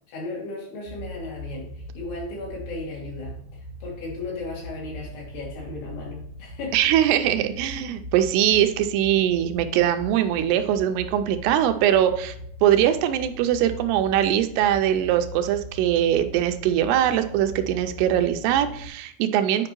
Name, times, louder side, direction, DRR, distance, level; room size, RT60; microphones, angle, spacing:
voice 1, 0.1-6.8, left 3 dB, 75° left, -3 dB, 4.7 m, -36 dB
sound 1, 0.9-18.9, equal, 55° left, 2.4 m, -40 dB
voice 2, 6.7-12.4 12.6-19.7, right 11 dB, 85° right, 8 dB, 2.6 m, -22 dB
8.8 x 5.2 x 3.0 m, 0.68 s
omnidirectional pair, 4.8 m